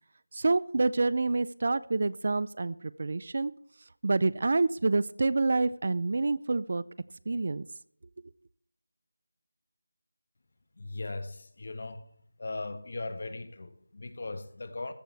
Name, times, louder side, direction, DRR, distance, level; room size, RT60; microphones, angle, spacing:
voice 1, 0.3-3.5 4.0-6.8 7.3-7.7, right 3 dB, 40° right, 0.4 m, -27 dB
voice 2, 10.8-12.0 12.4-14.9, left 2 dB, 40° left, 1.4 m, -38 dB
14.5 x 13.0 x 3.4 m
figure-of-eight pair, 175°, 0 cm